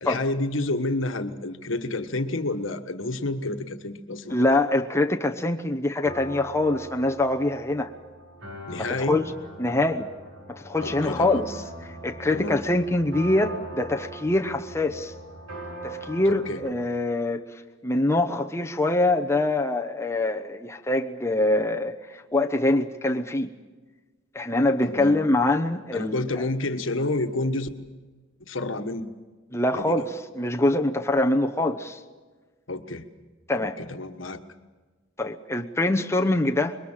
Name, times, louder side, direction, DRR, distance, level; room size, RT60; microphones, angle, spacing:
voice 1, 0.0-4.6 8.7-9.2 10.8-11.5 12.3-12.6 16.3-16.6 24.8-25.2 25.9-27.7 28.4-29.1 29.7-29.9 32.7-33.1 33.6-34.4, left 2 dB, 70° left, 7 dB, 1.4 m, -29 dB
voice 2, 4.3-7.9 8.8-9.3 9.6-10.1 10.5-11.5 12.0-15.1 15.8-17.4 17.8-23.5 24.3-26.4 29.5-32.0 33.5-33.8 35.2-36.8, left 2 dB, 15° left, 3 dB, 0.9 m, -24 dB
sound 1, 6.0-16.7, right 1 dB, 90° right, 4.1 m, -41 dB
26.5 x 22.0 x 7.5 m, 1.3 s
head